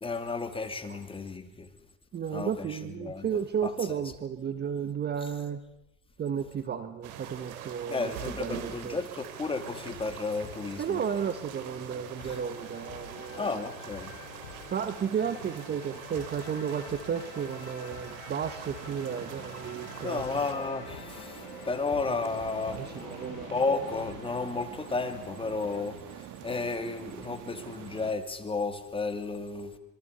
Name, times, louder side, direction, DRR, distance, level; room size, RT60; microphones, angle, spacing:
voice 1, 0.0-1.7 2.3-4.0 5.2-5.3 7.9-11.0 12.2-12.4 13.3-14.1 15.3-15.4 20.0-22.8 23.5-29.7, left 3 dB, 10° left, 8 dB, 2.5 m, -33 dB
voice 2, 2.1-5.6 6.2-8.1 8.4-9.0 10.8-13.6 14.7-20.2 22.8-23.5, right 7 dB, 25° right, 11 dB, 1.4 m, -33 dB
sound 1, 7.0-20.5, right 9 dB, 70° right, 4.2 m, -44 dB
sound 2, 9.5-26.0, left 7 dB, 55° left, 7.1 m, -48 dB
sound 3, 18.8-28.1, right 11 dB, 45° right, 2.5 m, -46 dB
26.5 x 23.0 x 6.8 m, 0.84 s
supercardioid pair, 125°, 43 cm